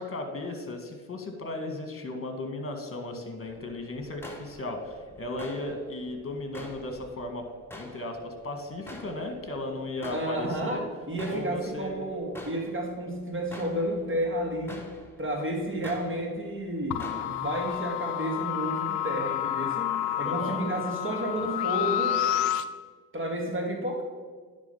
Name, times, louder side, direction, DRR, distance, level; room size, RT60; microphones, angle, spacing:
voice 1, 0.0-7.5 7.7-10.8 11.3-12.1 20.2-20.6, left 2 dB, 30° left, 5 dB, 1.7 m, -36 dB
sound 1, 3.4-17.8, left 1 dB, 5° left, 1.5 m, -48 dB
voice 2, 10.1-14.9 15.2-22.2 23.1-24.0, right 1 dB, 30° right, 1 dB, 2.1 m, -31 dB
sound 2, 16.9-22.6, left 12 dB, 75° left, 0.5 m, -29 dB
9.8 x 3.8 x 5.6 m, 1.5 s
hypercardioid pair, 55°, 42 cm